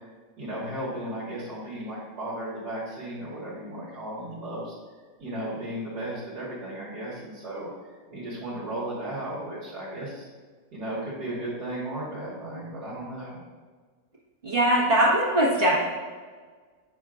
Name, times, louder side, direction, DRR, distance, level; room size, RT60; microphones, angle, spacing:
voice 1, 0.4-4.7 5.2-7.7 8.1-10.3 10.7-13.4, right 1 dB, 60° right, -8 dB, 1.9 m, -35 dB
voice 2, 14.4-15.8, right 1 dB, 30° right, -6 dB, 1.4 m, -21 dB
7.9 x 6.2 x 2.5 m, 1.5 s
omnidirectional pair, 2.1 m